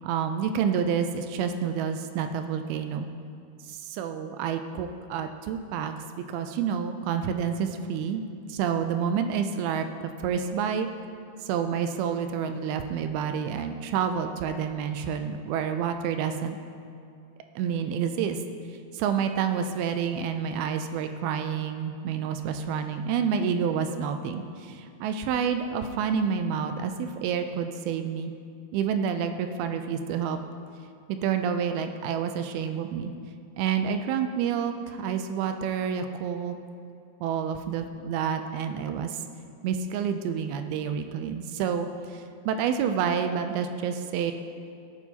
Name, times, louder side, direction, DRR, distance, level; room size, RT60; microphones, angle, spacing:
voice 1, 0.0-3.1 3.6-5.9 6.3-8.2 8.5-10.9 11.4-16.6 17.6-18.4 18.7-28.3 28.7-30.4 31.1-33.1 33.6-36.6 37.2-39.2 39.6-44.3, right 7 dB, 80° right, 7 dB, 2.2 m, -29 dB
18.0 x 9.1 x 2.8 m, 2.5 s
omnidirectional pair, 4.8 m